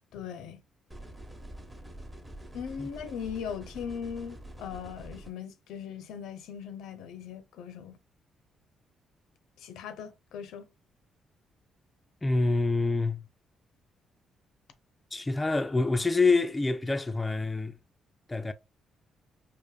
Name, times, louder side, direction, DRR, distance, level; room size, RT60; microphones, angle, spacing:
voice 1, 0.1-0.6 2.5-8.0 9.6-10.7, left 7 dB, 85° left, 0.6 m, -39 dB
sound 1, 0.9-5.3, right 1 dB, 15° right, 1.0 m, -46 dB
voice 2, 12.2-13.3 15.1-17.8 18.3-18.5, left 3 dB, 20° left, 0.4 m, -26 dB
4.9 x 2.5 x 2.3 m
cardioid pair, 90°, 0 cm